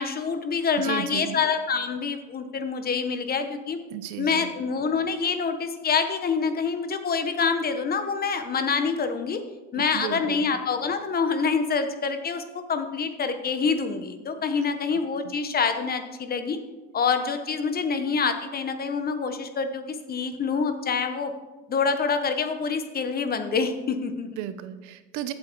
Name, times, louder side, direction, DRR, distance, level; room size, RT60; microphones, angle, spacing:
voice 1, 0.0-3.8 4.2-9.4 9.7-12.4 12.7-16.6 16.9-21.3 21.7-24.3, left 5 dB, 30° left, 8 dB, 1.2 m, -26 dB
voice 2, 0.8-1.4 3.9-4.5 9.7-10.6 14.9-15.3 24.4-25.3, right 11 dB, 65° right, 11 dB, 1.0 m, -35 dB
15.5 x 7.9 x 4.7 m, 1.2 s
supercardioid pair, 120°, 32 cm